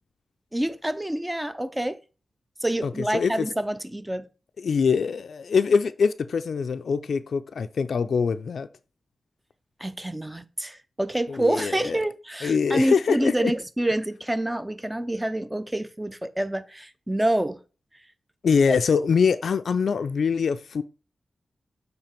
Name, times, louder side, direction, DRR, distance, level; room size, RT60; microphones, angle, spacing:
voice 1, 0.5-2.0 2.6-4.3 9.8-17.6 18.7-18.8, right 1 dB, 10° right, 0.5 m, -27 dB
voice 2, 2.8-3.5 4.6-8.7 11.3-12.0 12.4-13.5 18.4-20.8, left 5 dB, 75° left, 0.4 m, -23 dB
6.9 x 3.3 x 4.3 m
wide cardioid pair, 125°, 0 cm